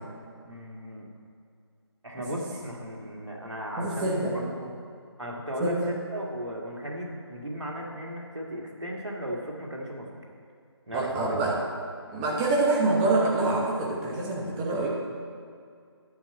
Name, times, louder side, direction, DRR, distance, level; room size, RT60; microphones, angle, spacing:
voice 1, 0.4-1.1 2.0-4.8 5.2-10.1 10.9-11.5, equal, 85° right, -2 dB, 1.9 m, -36 dB
voice 2, 3.8-4.4 5.6-5.8 10.9-11.6 12.1-14.9, right 2 dB, 15° right, -2 dB, 1.1 m, -26 dB
10.5 x 4.5 x 7.7 m, 2.3 s
figure-of-eight pair, 155°, 14 cm